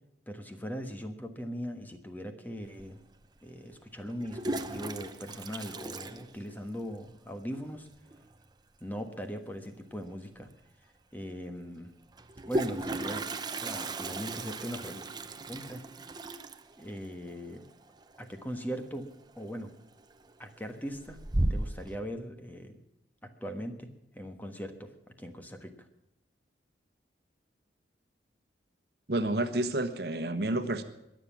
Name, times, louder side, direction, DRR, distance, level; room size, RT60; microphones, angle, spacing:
voice 1, 0.3-3.0 3.4-7.9 8.8-10.5 11.1-11.9 12.4-13.3 13.6-15.1 15.5-15.8 16.8-17.6 18.2-19.1 19.3-19.7 20.4-21.2 21.5-22.8 23.2-23.9 24.1-24.9 25.2-25.7, equal, 10° left, 6 dB, 1.3 m, -40 dB
Toilet flush, 2.8-2.9 4.1-6.9 7.2-7.3 7.6-7.7 7.9-8.3 10.0-10.1 10.5-10.6 12.1-18.8 19.1-19.6 20.0-20.5 20.9-21.9, right 2 dB, 25° right, 0.8 m, -35 dB
voice 2, 29.1-30.8, right 1 dB, 60° right, 10 dB, 1.1 m, -29 dB
22.0 x 7.5 x 7.2 m, 0.88 s
head